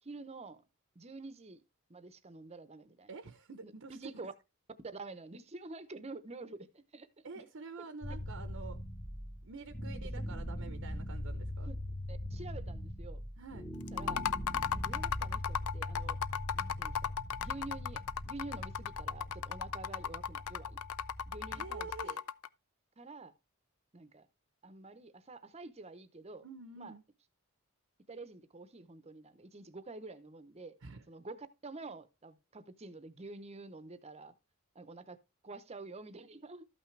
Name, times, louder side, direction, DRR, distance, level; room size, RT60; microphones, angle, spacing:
voice 1, 0.0-0.6 0.9-1.6 1.9-3.1 3.6-4.3 4.8-6.7 6.9-7.4 11.7-11.8 12.1-13.2 13.9-14.2 14.7-16.2 16.5-17.1 17.4-20.8 21.3-22.2 23.0-23.3 23.9-24.3 24.6-26.4 26.8-26.9 28.1-30.7 31.1-34.3 34.7-35.2 35.4-36.7, right 3 dB, 30° right, 0.8 m, -48 dB
voice 2, 3.1-4.0 7.2-8.8 9.4-11.7 13.4-13.7 21.5-22.2 26.4-27.0 30.8-31.0, right 4 dB, 65° right, 0.8 m, -48 dB
sound 1, 8.0-22.0, left 1 dB, 20° left, 1.2 m, -42 dB
sound 2, 13.9-22.5, left 8 dB, 85° left, 0.4 m, -36 dB
13.0 x 5.8 x 3.2 m
head